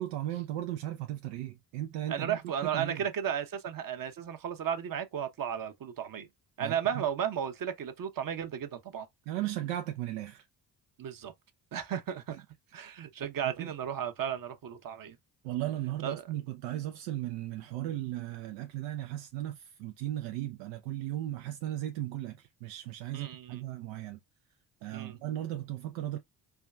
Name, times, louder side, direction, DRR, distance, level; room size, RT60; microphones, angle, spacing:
voice 1, 0.0-2.4 2.7-3.0 6.6-6.8 9.3-10.4 13.6-13.7 15.4-24.2 24.8-26.2, right 13 dB, 80° right, 0.5 m, -36 dB
voice 2, 2.1-6.3 6.6-9.1 11.0-11.3 11.7-12.4 12.7-15.2 16.0-16.2 23.1-23.6 24.9-25.2, right 9 dB, 45° right, 0.8 m, -34 dB
4.5 x 2.2 x 2.2 m
hypercardioid pair, 50°, 49 cm